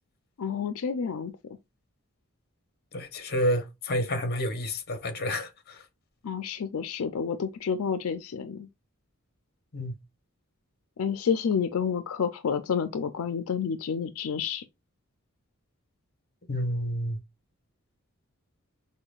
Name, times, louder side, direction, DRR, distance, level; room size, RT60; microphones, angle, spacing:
voice 1, 0.4-1.3 6.2-8.7 11.0-14.6, left 6 dB, 85° left, 0.4 m, -29 dB
voice 2, 2.9-5.8 9.7-10.0 16.5-17.2, equal, 50° left, 0.9 m, -29 dB
5.6 x 2.2 x 2.4 m
head